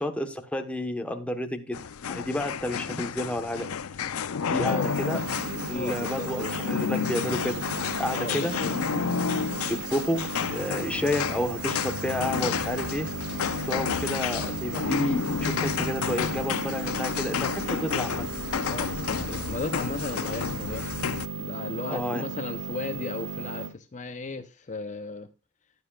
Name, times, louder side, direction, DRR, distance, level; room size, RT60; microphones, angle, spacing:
voice 1, 0.0-1.8 2.1-3.7 4.5-5.2 5.7-7.6 8.0-9.0 9.7-13.1 13.6-18.3 21.9-22.2, left 1 dB, 5° left, 1.1 m, -30 dB
sound 1, 1.7-21.3, left 6 dB, 75° left, 0.6 m, -31 dB
sound 2, 4.7-23.7, right 3 dB, 65° right, 2.1 m, -36 dB
voice 2, 5.5-6.6 8.2-8.7 18.7-21.1 21.3-25.3, left 3 dB, 35° left, 0.6 m, -35 dB
15.0 x 10.0 x 2.3 m
head